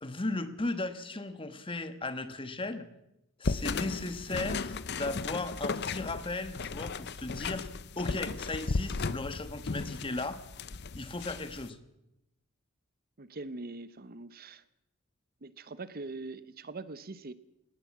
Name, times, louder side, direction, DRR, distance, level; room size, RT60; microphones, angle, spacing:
voice 1, 0.0-2.9 3.4-7.7 8.0-10.4 10.9-11.8, left 2 dB, 25° left, 10 dB, 1.3 m, -36 dB
sound 1, 3.4-11.7, left 4 dB, 55° left, 0.7 m, -35 dB
voice 2, 13.2-14.6 15.4-17.3, right 3 dB, 45° right, 15 dB, 0.9 m, -42 dB
19.5 x 18.5 x 7.4 m, 0.88 s
head